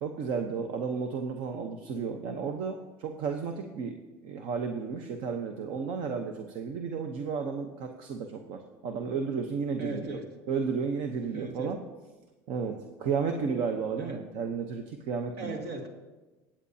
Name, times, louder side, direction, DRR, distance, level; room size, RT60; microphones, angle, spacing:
voice 1, 0.0-4.0 4.2-10.2 10.5-11.8 12.5-15.6, right 5 dB, 65° right, 5 dB, 0.9 m, -33 dB
voice 2, 9.8-10.3 11.3-11.7 14.0-14.2 15.4-15.9, right 2 dB, 80° right, 2 dB, 2.2 m, -38 dB
22.5 x 8.8 x 2.8 m, 1.2 s
cardioid pair, 130°, 9 cm